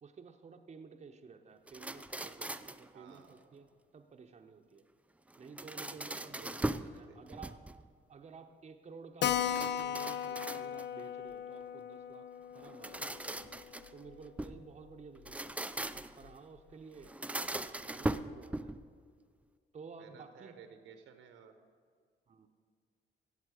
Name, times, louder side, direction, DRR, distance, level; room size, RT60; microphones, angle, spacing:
voice 1, 0.0-4.9 5.4-7.6 8.1-13.2 13.9-15.5 16.2-18.7 19.7-20.6 22.3-22.5, right 5 dB, 35° right, 5 dB, 0.8 m, -53 dB
sound 1, 1.7-2.9 5.3-7.0 7.3-7.9 9.4-11.0 12.6-14.6 15.2-16.3 17.0-18.9, right 1 dB, 5° right, 0.4 m, -40 dB
voice 2, 2.9-3.6 6.3-7.2 20.0-21.6, right 7 dB, 80° right, 8 dB, 1.2 m, -55 dB
Keyboard (musical), 9.2-14.3 14.5-14.6 14.9-15.0 15.3-15.4 15.9-16.3, left 10 dB, 65° left, 0.5 m, -37 dB
17.0 x 7.3 x 4.9 m, 2.1 s
cardioid pair, 90°, 20 cm